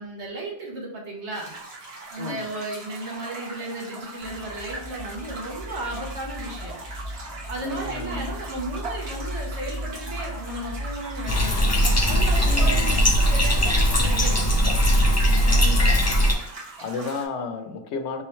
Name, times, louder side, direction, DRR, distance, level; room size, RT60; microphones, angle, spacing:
voice 1, 0.0-1.5 2.1-6.8 7.5-11.7 12.1-14.6, right 2 dB, 85° right, -2 dB, 1.4 m, -34 dB
sound 1, 1.3-17.3, right 3 dB, 65° right, 1.2 m, -40 dB
sound 2, 4.2-13.8, equal, 25° right, 0.9 m, -35 dB
voice 2, 7.6-8.3 12.4-13.0 15.4-16.2 16.8-18.2, left 3 dB, 80° left, 7 dB, 0.9 m, -33 dB
Bathtub (filling or washing), 11.3-16.3, equal, 25° left, 0.4 m, -19 dB
3.5 x 3.1 x 3.1 m, 0.83 s
omnidirectional pair, 1.1 m